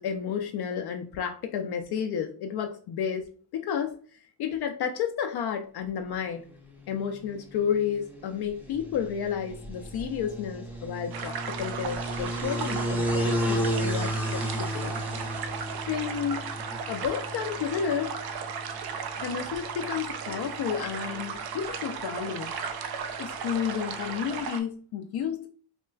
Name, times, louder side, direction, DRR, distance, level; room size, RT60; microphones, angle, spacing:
voice 1, 0.0-6.4 6.9-15.0 15.9-16.5 16.9-18.2 19.2-22.5 23.2-25.5, left 8 dB, 55° left, 4 dB, 0.5 m, -31 dB
sound 1, 6.4-24.5, equal, 5° right, 0.6 m, -35 dB
sound 2, 11.1-24.6, right 6 dB, 50° right, 0.5 m, -36 dB
4.4 x 2.1 x 2.3 m, 0.42 s
cardioid pair, 100°, 49 cm